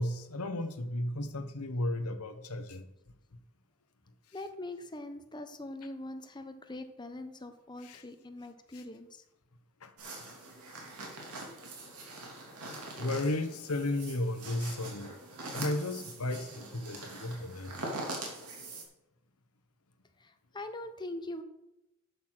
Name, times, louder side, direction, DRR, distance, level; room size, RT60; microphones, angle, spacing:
voice 1, 0.0-2.9 7.8-8.0 8.7-8.8 9.8-9.9 13.0-15.2 15.5-17.7, left 1 dB, 70° left, 1.0 m, -34 dB
voice 2, 4.3-9.2 20.2-21.4, left 1 dB, 20° left, 0.9 m, -42 dB
sound 1, 10.0-18.8, right 2 dB, 80° right, 2.8 m, -43 dB
11.0 x 6.4 x 6.2 m
head